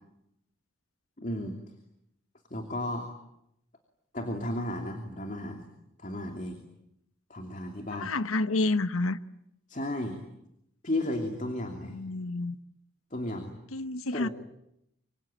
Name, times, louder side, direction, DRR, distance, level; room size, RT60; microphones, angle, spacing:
voice 1, 1.2-1.6 2.5-3.1 4.1-5.6 6.0-6.6 7.3-8.1 9.7-10.2 10.8-12.0 13.1-13.6 14.1-14.3, left 1 dB, 40° left, 2.7 m, -34 dB
voice 2, 7.9-9.2 11.9-12.6 13.7-14.3, left 2 dB, 90° left, 1.0 m, -29 dB
25.5 x 25.5 x 8.9 m
head